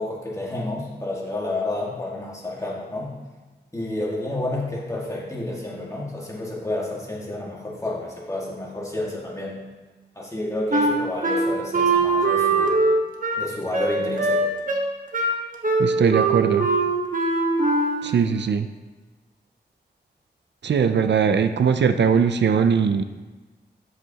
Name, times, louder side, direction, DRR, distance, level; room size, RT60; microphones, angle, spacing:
voice 1, 0.0-3.2 3.7-9.6 10.2-12.8 13.4-14.5, left 2 dB, 15° left, -4 dB, 1.8 m, -30 dB
Wind instrument woodwind instrument, 10.7-18.2, right 3 dB, 50° right, 1.0 m, -22 dB
voice 2, 15.8-16.7 18.0-18.7 20.6-23.0, right 6 dB, 85° right, 9 dB, 0.4 m, -20 dB
9.5 x 7.7 x 2.9 m, 1.3 s
wide cardioid pair, 95°, 18 cm